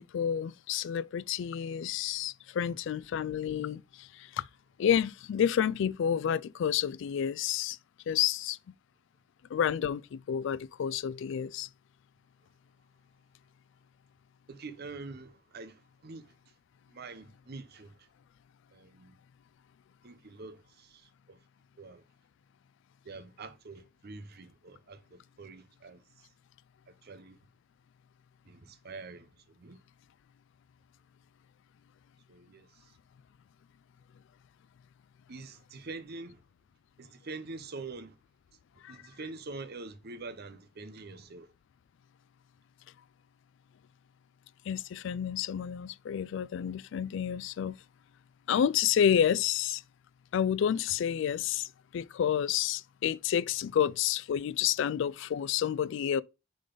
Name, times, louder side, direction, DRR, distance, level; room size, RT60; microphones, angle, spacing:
voice 1, 0.0-4.5 4.8-7.8 8.1-8.6 9.5-11.7 38.8-39.0 44.7-47.8 48.5-49.8 50.3-56.2, left 9 dB, 65° left, 0.3 m, -30 dB
voice 2, 14.5-16.3 16.9-18.1 18.7-19.2 20.0-21.4 21.8-22.0 23.0-26.3 26.9-27.4 28.4-29.8 32.3-33.0 35.3-36.4 37.0-38.2 38.9-41.5, right 3 dB, 55° right, 0.7 m, -45 dB
6.6 x 3.9 x 3.8 m
head